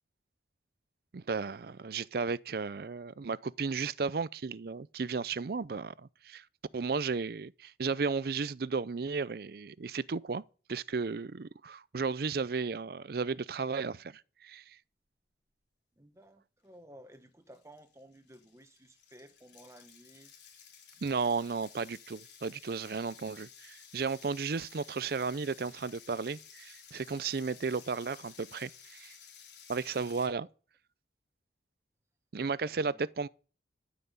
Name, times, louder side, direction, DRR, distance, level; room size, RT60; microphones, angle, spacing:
voice 1, 1.1-6.4 6.7-10.4 10.7-14.6 21.0-29.2 29.7-30.5 32.3-33.3, right 4 dB, 55° right, 0.5 m, -34 dB
voice 2, 15.9-20.3 32.6-33.1, right 1 dB, 15° right, 1.2 m, -55 dB
sound 1, 17.1-17.2 17.5-30.3, left 8 dB, 75° left, 3.7 m, -54 dB
13.5 x 5.8 x 8.2 m
head